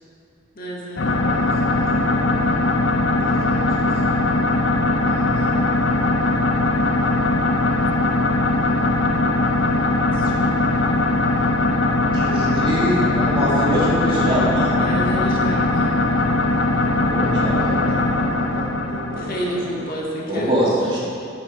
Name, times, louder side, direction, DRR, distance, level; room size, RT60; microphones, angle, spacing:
voice 1, 0.5-1.2 10.1-10.5 14.1-14.2 14.8-16.1 19.3-21.0, equal, 45° left, -3 dB, 1.7 m, -30 dB
sound 1, 1.0-19.8, left 2 dB, 60° left, 0.7 m, -20 dB
voice 2, 1.1-2.2 3.2-4.0 5.0-5.6 17.2-19.9, right 1 dB, 85° right, -10 dB, 1.8 m, -36 dB
voice 3, 12.1-15.0 17.1-17.7 20.3-21.0, equal, 25° right, -8 dB, 2.6 m, -23 dB
10.0 x 7.4 x 4.8 m, 2.5 s
head